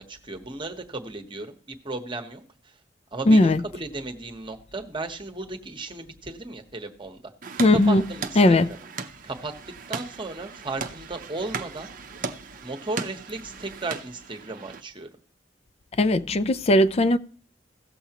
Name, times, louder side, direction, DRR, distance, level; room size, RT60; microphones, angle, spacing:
voice 1, 0.0-2.7 3.1-7.2 7.7-8.6 9.2-9.5 9.9-11.9 12.6-15.1, right 2 dB, 30° right, 1.0 m, -35 dB
voice 2, 3.3-3.6 7.6-8.0 8.4-8.7 16.0-17.2, left 1 dB, 35° left, 0.4 m, -18 dB
sound 1, 7.4-14.8, right 5 dB, 50° right, 0.7 m, -37 dB
17.0 x 7.0 x 2.9 m
head